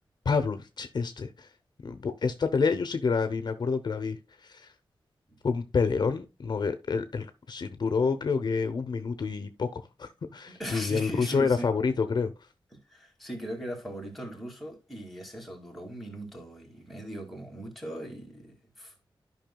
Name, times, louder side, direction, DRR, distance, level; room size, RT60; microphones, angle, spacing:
voice 1, 0.2-1.5 1.8-4.7 5.4-12.3, left 5 dB, 55° left, 0.7 m, -28 dB
voice 2, 10.5-12.0 12.7-18.9, right 1 dB, ahead, 2.3 m, -39 dB
12.0 x 5.6 x 2.2 m
wide cardioid pair, 130°, 9 cm